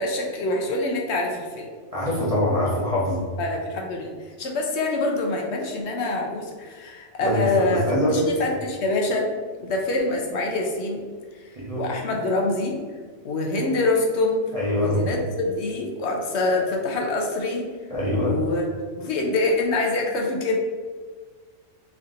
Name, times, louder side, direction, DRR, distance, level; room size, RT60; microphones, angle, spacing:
voice 1, 0.0-1.7 3.4-9.3 9.6-11.0 11.4-11.5 11.8-12.8 13.2-14.4 14.7-17.7 18.0-20.6, left 2 dB, 70° left, 1 dB, 0.8 m, -25 dB
voice 2, 1.9-3.2 7.2-8.6 11.6-11.8 14.5-15.1 17.9-18.4, left 1 dB, 35° right, -5 dB, 0.7 m, -24 dB
3.3 x 2.6 x 3.7 m, 1.6 s
omnidirectional pair, 1.2 m